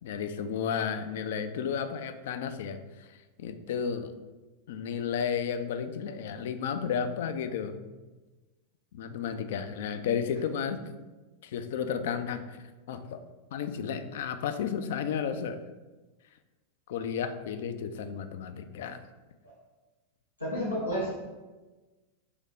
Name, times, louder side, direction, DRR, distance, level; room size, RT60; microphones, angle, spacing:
voice 1, 0.0-4.1 4.7-7.9 8.9-11.0 11.4-13.2 13.5-15.6 16.9-19.0, left 7 dB, 55° left, 9 dB, 0.3 m, -33 dB
voice 2, 20.4-21.2, equal, 85° left, -10 dB, 1.1 m, -31 dB
3.5 x 3.5 x 3.7 m, 1.2 s
figure-of-eight pair, 90°, 0 cm